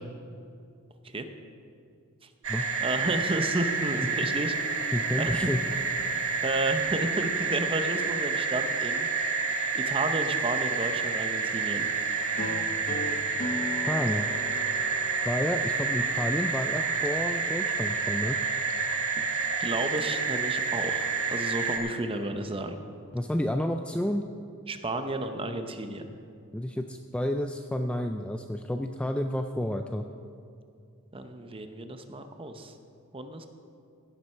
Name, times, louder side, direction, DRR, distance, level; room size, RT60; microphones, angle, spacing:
sound 1, 2.4-21.8, right 5 dB, 65° right, 1.5 m, -29 dB
voice 1, 2.8-4.5 5.1-5.5 6.4-9.1 9.7-11.9 19.2-19.3 19.6-22.8 24.7-26.1 31.1-32.7 33.1-33.5, right 2 dB, 25° right, 7 dB, 0.8 m, -32 dB
voice 2, 4.9-5.6 13.9-14.3 15.2-18.4 23.1-24.2 26.5-30.0, left 1 dB, 5° left, 5 dB, 0.3 m, -30 dB
sound 2, 12.4-17.4, left 2 dB, 40° left, 0.6 m, -38 dB
16.0 x 7.6 x 5.6 m, 2.4 s
head